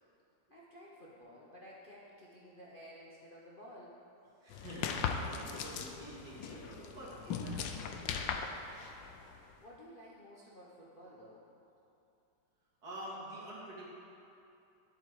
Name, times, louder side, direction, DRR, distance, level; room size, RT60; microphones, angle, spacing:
voice 1, 0.5-4.0 9.6-11.4, equal, 35° left, -6 dB, 0.9 m, -53 dB
voice 2, 4.4-8.4 12.8-13.9, right 1 dB, 55° right, -7 dB, 2.8 m, -48 dB
sound 1, 4.5-9.5, left 6 dB, 80° left, 1.4 m, -39 dB
11.0 x 8.1 x 4.8 m, 2.7 s
omnidirectional pair, 2.0 m